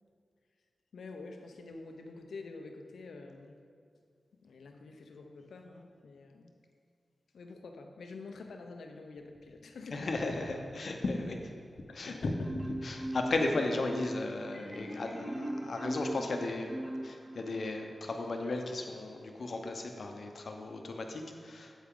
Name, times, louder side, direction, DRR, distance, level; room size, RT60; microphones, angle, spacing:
voice 1, 0.9-3.6 4.3-6.5 7.3-10.1 11.9-12.3, left 3 dB, 90° left, 4 dB, 0.7 m, -47 dB
voice 2, 9.9-11.5 11.9-12.5 12.8-21.7, left 2 dB, 60° left, 3 dB, 0.9 m, -35 dB
Marimba xylophone, 12.4-17.6, right 1 dB, 10° right, 2.4 m, -39 dB
8.4 x 8.3 x 3.8 m, 2.2 s
cardioid pair, 75°, 0 cm